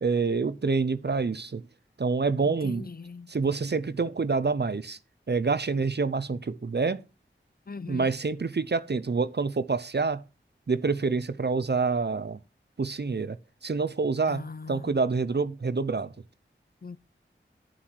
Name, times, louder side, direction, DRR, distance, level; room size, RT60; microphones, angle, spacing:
voice 1, 0.0-1.6 2.0-2.9 3.3-5.0 5.3-7.0 7.9-10.2 10.7-12.4 12.8-13.4 13.6-16.1, right 4 dB, 55° right, 0.7 m, -27 dB
voice 2, 2.4-3.3 7.7-8.1 14.3-15.0 16.8-17.0, left 4 dB, 45° left, 0.6 m, -40 dB
11.0 x 7.4 x 4.6 m
wide cardioid pair, 45°, 21 cm